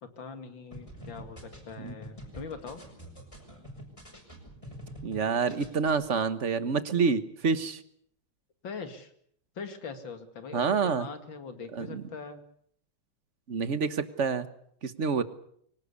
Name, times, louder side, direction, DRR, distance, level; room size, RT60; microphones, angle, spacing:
voice 1, 0.0-2.8 8.6-9.1 9.5-12.4, left 5 dB, 65° left, 8 dB, 2.9 m, -42 dB
sound 1, 0.7-5.2 5.5-5.9, equal, 15° left, 6.0 m, -46 dB
voice 2, 5.0-7.8 10.5-11.1 11.8-12.0 13.5-14.5 14.8-15.2, right 5 dB, 40° right, 12 dB, 1.4 m, -27 dB
24.5 x 18.0 x 8.3 m, 0.66 s
omnidirectional pair, 2.2 m